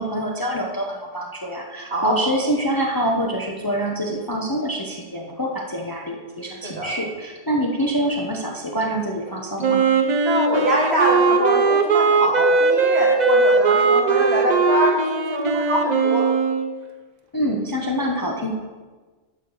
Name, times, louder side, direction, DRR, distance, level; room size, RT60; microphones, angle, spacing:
voice 1, 0.0-9.8 17.3-18.5, equal, 20° left, 0 dB, 0.8 m, -25 dB
Wind instrument woodwind instrument, 9.6-16.7, right 4 dB, 45° right, 0.7 m, -19 dB
voice 2, 10.2-16.3, right 1 dB, 60° right, -2 dB, 2.1 m, -23 dB
9.9 x 4.4 x 6.5 m, 1.3 s
omnidirectional pair, 1.2 m